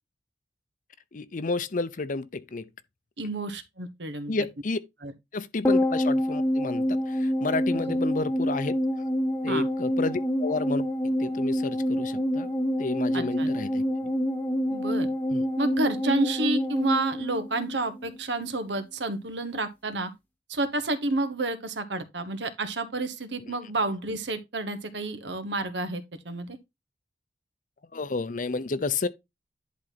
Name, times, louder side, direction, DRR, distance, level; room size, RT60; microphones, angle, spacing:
voice 1, 1.1-2.6 4.3-4.8 5.3-8.8 9.4-10.8 11.2-12.5 12.8-13.8 15.3-15.4 27.9-29.1, left 3 dB, 50° left, 0.7 m, -31 dB
voice 2, 3.2-4.3 5.0-5.1 7.7-8.0 9.5-9.7 13.1-13.5 14.7-15.1 15.6-20.1 20.5-26.6, right 2 dB, 85° right, 1.2 m, -30 dB
sound 1, 5.6-18.2 18.4-18.5, equal, 10° left, 1.1 m, -27 dB
10.5 x 4.0 x 4.0 m
head